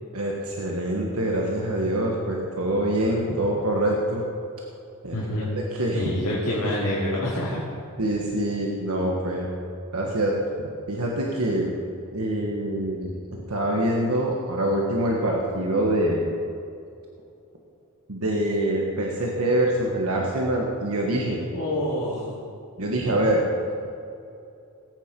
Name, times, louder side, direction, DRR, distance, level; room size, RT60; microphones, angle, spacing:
voice 1, 0.1-4.2 5.0-5.2 5.7-6.1 8.0-9.5 9.9-10.4 10.9-11.8 12.1-16.4 18.1-21.4 22.8-23.5, right 1 dB, 70° right, -1 dB, 1.5 m, -25 dB
voice 2, 5.1-5.5 5.9-7.6 21.5-22.4, left 1 dB, 70° left, -8 dB, 2.6 m, -27 dB
18.5 x 8.9 x 5.3 m, 2.6 s
head